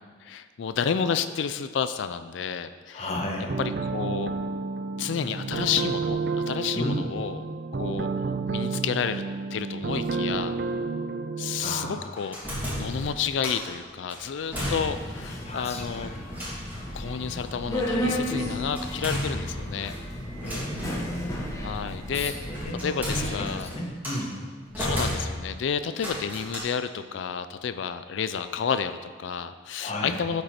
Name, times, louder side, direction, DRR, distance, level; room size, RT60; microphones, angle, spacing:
voice 1, 0.2-3.1 3.9-4.3 5.0-7.4 7.7-8.1 8.5-9.2 9.5-10.6 11.4-16.1 16.9-19.9 21.6-22.5 22.8-23.7 24.8-30.4, left 7 dB, 70° left, 11 dB, 0.4 m, -30 dB
voice 2, 2.9-3.6 6.7-7.0 11.6-12.1 15.4-16.2 20.4-21.4 22.1-24.3 29.8-30.2, left 1 dB, 35° left, 0 dB, 1.2 m, -33 dB
sound 1, 3.5-12.0, right 4 dB, 50° right, 0.5 m, -30 dB
sound 2, 12.2-13.7 14.1-15.2 15.5-15.6 16.3-16.9 18.8-19.9 20.4-21.0 22.1-24.3 24.7-25.6 25.9-26.6, equal, 10° right, 2.8 m, -33 dB
Subway metro underground, 14.5-22.6, equal, 15° left, 1.3 m, -33 dB
13.0 x 5.3 x 4.3 m, 1.5 s
head